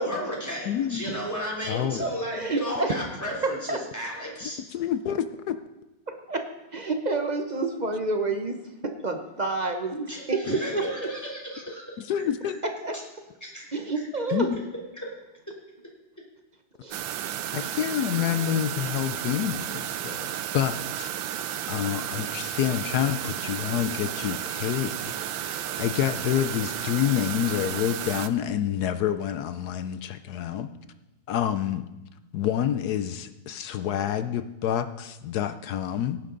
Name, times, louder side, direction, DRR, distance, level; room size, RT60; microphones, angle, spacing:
voice 1, 0.0-4.6 10.1-12.0 12.4-12.6 13.4-13.7 14.9-15.1 15.5-15.6, equal, 10° left, -3 dB, 3.2 m, -34 dB
voice 2, 0.7-1.1 1.7-2.1 4.7-5.6 10.5-10.6 12.0-12.6 14.3-14.6 17.5-20.3 20.5-25.2 25.4-30.7 31.3-31.9 32.3-36.2, left 10 dB, 70° left, 11 dB, 1.0 m, -28 dB
voice 3, 2.3-2.9 3.7-3.8 6.1-6.4 6.7-8.5 8.8-10.8 12.8-12.9 13.7-14.5 16.8-17.0, right 3 dB, 45° right, 5 dB, 0.5 m, -28 dB
sound 1, 16.9-28.3, right 11 dB, 85° right, 1.4 m, -33 dB
17.0 x 10.0 x 3.9 m, 1.0 s
omnidirectional pair, 2.1 m